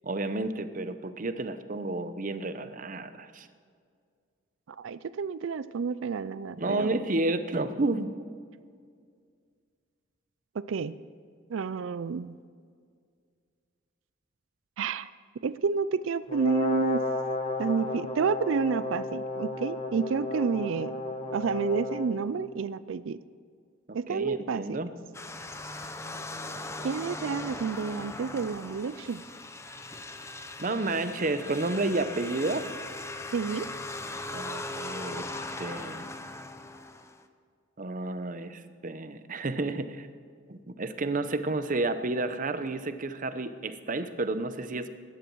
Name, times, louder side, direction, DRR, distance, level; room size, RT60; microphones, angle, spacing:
voice 1, 0.0-3.5 6.6-8.1 24.1-24.9 30.6-32.7 34.3-35.3 35.6-36.0 37.8-40.1 40.5-44.9, right 2 dB, 40° right, 11 dB, 0.8 m, -31 dB
voice 2, 4.8-7.0 10.6-11.0 11.5-12.4 14.8-15.1 15.4-17.0 17.6-21.0 21.3-23.2 23.9-24.8 26.8-29.2 33.3-33.7, right 5 dB, 75° right, 16 dB, 0.4 m, -30 dB
Brass instrument, 16.3-22.1, left 2 dB, 30° left, 1.6 m, -33 dB
sound 1, 25.1-37.3, left 2 dB, 15° left, 0.7 m, -39 dB
17.0 x 12.0 x 4.7 m, 2.1 s
head